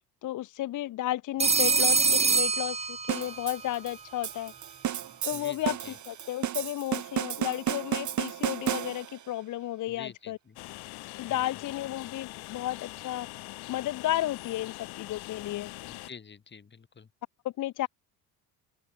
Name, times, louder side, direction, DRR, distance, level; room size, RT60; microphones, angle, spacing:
voice 1, 0.2-4.5 5.2-10.4 11.2-13.3 13.7-15.7 17.4-17.9, left 14 dB, 50° left, 1.0 m, -33 dB
Telephone, 1.4-3.5, right 4 dB, 15° right, 0.9 m, -24 dB
sound 1, 3.1-9.3, right 10 dB, 45° right, 4.6 m, -33 dB
voice 2, 5.3-5.9 9.9-10.6 11.3-11.5 15.9-17.1, left 6 dB, 25° left, 4.8 m, -48 dB
Train, 10.6-16.1, left 21 dB, 75° left, 4.2 m, -43 dB
open air
supercardioid pair, 100°, 39 cm